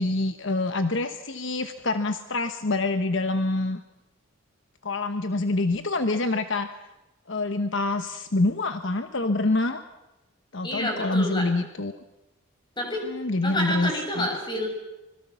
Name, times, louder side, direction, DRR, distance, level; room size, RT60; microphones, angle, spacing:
voice 1, 0.0-3.8 4.8-6.7 7.3-9.8 10.5-12.0 13.0-14.3, left 2 dB, 60° left, 9 dB, 1.2 m, -26 dB
voice 2, 10.6-11.5 12.8-13.1 13.4-14.7, left 1 dB, 20° left, 3 dB, 6.2 m, -29 dB
25.5 x 22.0 x 7.1 m, 0.95 s
head